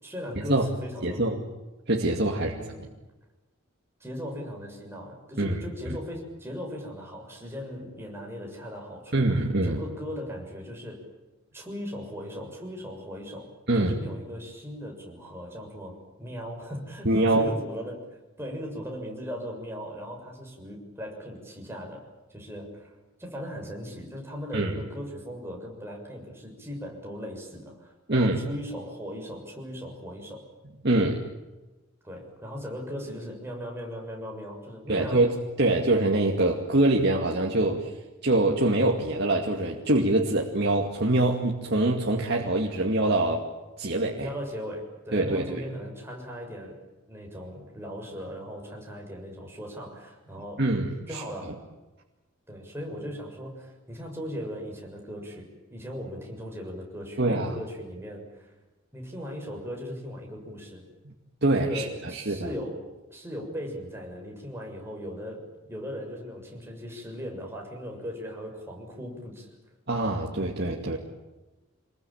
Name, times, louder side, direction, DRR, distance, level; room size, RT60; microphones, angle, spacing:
voice 1, 0.0-1.3 2.4-2.9 4.0-11.0 11.5-18.0 18.4-22.0 22.3-22.9 23.2-30.4 32.0-35.3 44.2-46.8 47.1-50.6 51.1-51.6 52.5-58.5 58.9-60.9 61.5-65.4 65.7-69.5, equal, 10° right, 0 dB, 6.9 m, -38 dB
voice 2, 1.0-1.4 1.9-2.7 5.4-5.6 9.1-9.8 13.7-14.0 17.0-17.5 24.5-24.7 28.1-28.4 30.8-31.2 34.9-37.9 38.2-43.5 43.8-44.3 45.1-45.6 50.6-51.2 57.2-57.5 61.4-61.8 62.1-62.5 69.9-71.0, right 2 dB, 55° right, 0 dB, 2.4 m, -24 dB
27.0 x 22.0 x 8.9 m, 1.1 s
head